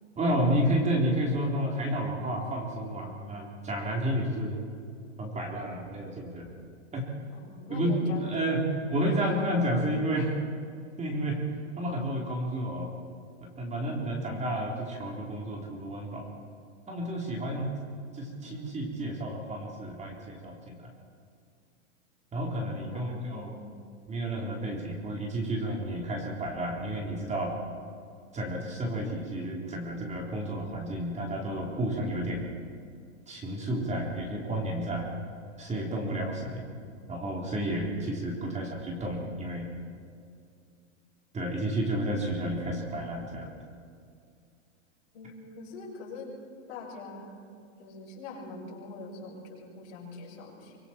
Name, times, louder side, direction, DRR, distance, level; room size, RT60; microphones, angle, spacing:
voice 1, 0.2-4.5 5.2-6.5 6.9-7.0 7.7-8.6 8.9-10.4 11.0-11.4 11.8-12.9 13.4-16.3 16.9-17.7 18.1-20.8 22.3-23.6 24.1-27.5 28.3-32.4 33.3-35.1 35.6-36.6 37.1-39.7 41.3-43.5, right 1 dB, 20° right, -1 dB, 3.8 m, -31 dB
voice 2, 7.3-8.7 9.2-9.3 22.9-24.2 45.1-46.3 46.7-47.4 47.8-50.8, left 3 dB, 60° left, -3 dB, 7.6 m, -43 dB
24.5 x 23.5 x 4.5 m, 2.3 s
hypercardioid pair, 125°, 37 cm